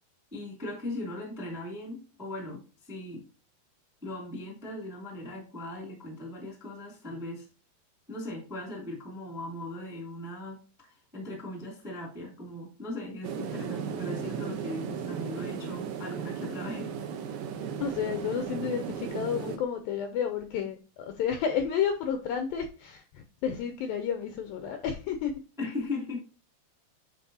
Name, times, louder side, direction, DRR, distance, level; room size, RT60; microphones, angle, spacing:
voice 1, 0.3-3.3 4.0-7.4 8.1-16.9 25.6-26.2, left 1 dB, ahead, 0.9 m, -38 dB
sound 1, 13.2-19.6, right 7 dB, 75° right, 2.3 m, -36 dB
voice 2, 17.8-25.4, left 7 dB, 90° left, 2.0 m, -31 dB
9.4 x 4.6 x 2.7 m
omnidirectional pair, 4.8 m